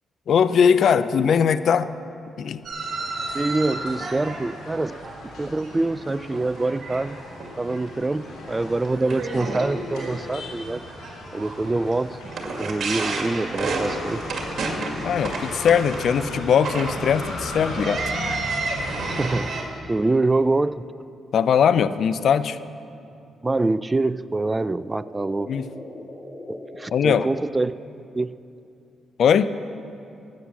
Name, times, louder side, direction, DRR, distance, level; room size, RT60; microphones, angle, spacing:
voice 1, 0.3-1.9 2.4-2.6 15.0-18.0 21.3-22.6 25.5-25.7 26.9-27.3 29.2-29.6, left 7 dB, 70° left, 14 dB, 0.4 m, -20 dB
sound 1, 2.6-6.0 6.3-7.0 7.4-7.8 8.2-8.3 8.8-19.6, right 3 dB, 60° right, 2.1 m, -31 dB
sound 2, 2.8-19.3, left 1 dB, 85° left, 3.4 m, -37 dB
voice 2, 3.3-4.9 5.4-7.2 7.6-10.8 11.3-12.2 12.4-14.2 19.1-19.5 19.9-20.8 23.4-25.5 26.5-27.7 28.1-28.3, right 2 dB, 25° right, 17 dB, 0.3 m, -25 dB
sound 3, 23.9-28.3, left 1 dB, 25° left, 1.9 m, -42 dB
13.0 x 9.0 x 7.5 m, 2.6 s
supercardioid pair, 60°, 0 cm